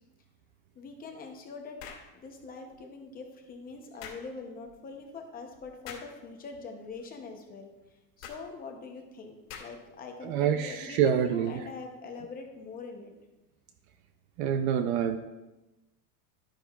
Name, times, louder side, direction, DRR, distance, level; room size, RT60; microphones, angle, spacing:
voice 1, 0.8-1.8 2.1-7.7 8.2-13.1, left 4 dB, 20° left, 3 dB, 0.6 m, -43 dB
sound 1, 1.8-2.1 4.0-4.2 5.8-6.1 8.2-8.4 9.5-9.9, left 7 dB, 60° left, 2.0 m, -44 dB
voice 2, 10.2-11.6 14.4-15.2, right 8 dB, 45° right, 9 dB, 0.5 m, -26 dB
11.5 x 10.0 x 2.3 m, 1.0 s
supercardioid pair, 170°, 49 cm